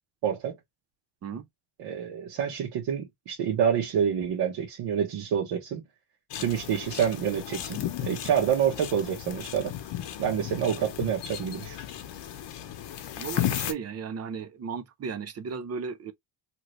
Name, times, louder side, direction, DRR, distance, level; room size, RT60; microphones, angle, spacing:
voice 1, 0.2-0.5 1.8-5.8 6.4-9.7 10.2-11.8, right 8 dB, 80° right, 1.1 m, -27 dB
sound 1, 6.3-13.7, left 11 dB, 70° left, 0.8 m, -35 dB
voice 2, 13.2-16.1, right 6 dB, 35° right, 0.5 m, -35 dB
2.9 x 2.5 x 3.0 m
cardioid pair, 150°, 43 cm